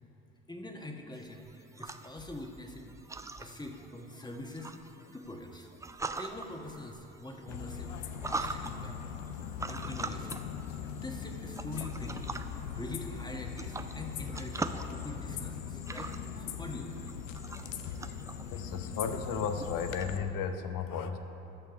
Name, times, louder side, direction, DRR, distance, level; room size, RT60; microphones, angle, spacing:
voice 1, 0.5-3.0 3.3-4.7 5.1-5.7 6.1-7.9 8.2-9.0 9.7-10.4 10.7-16.1 16.4-17.0 17.6-17.7, left 1 dB, 10° left, 3 dB, 1.3 m, -44 dB
sound 1, 1.1-20.0, right 3 dB, 10° right, 0.4 m, -43 dB
sound 2, 7.5-20.2, left 7 dB, 90° left, 0.6 m, -40 dB
voice 2, 18.5-21.2, left 6 dB, 60° left, 8 dB, 0.9 m, -34 dB
12.5 x 6.5 x 5.8 m, 3.0 s
hypercardioid pair, 60°, 38 cm